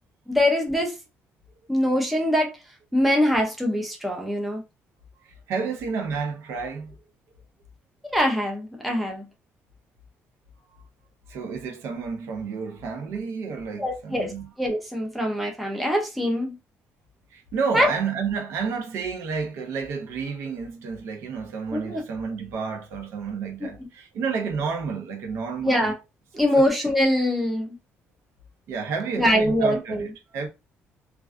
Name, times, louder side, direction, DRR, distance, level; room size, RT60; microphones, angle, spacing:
voice 1, 0.3-1.0 1.7-2.5 2.9-4.6 8.1-9.2 13.8-14.3 14.6-16.6 17.7-17.9 21.7-22.0 23.6-23.7 25.6-26.0 26.3-27.8 29.2-30.1, equal, ahead, 0.5 m, -23 dB
voice 2, 5.2-7.0 11.3-14.5 17.3-25.9 28.7-30.1 30.3-30.5, right 5 dB, 70° right, 0.6 m, -30 dB
2.4 x 2.2 x 2.4 m
cardioid pair, 175°, 5 cm